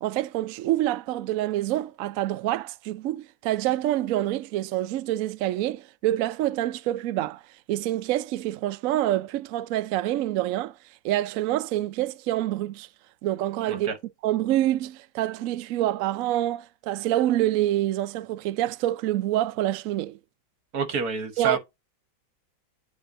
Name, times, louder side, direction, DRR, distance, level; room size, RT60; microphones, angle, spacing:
voice 1, 0.0-7.4 7.7-10.7 11.0-12.9 13.2-13.9 14.2-20.2 21.4-21.6, right 14 dB, 85° right, 0.7 m, -26 dB
voice 2, 20.7-21.6, right 5 dB, 55° right, 1.6 m, -27 dB
8.9 x 3.4 x 3.7 m
omnidirectional pair, 2.0 m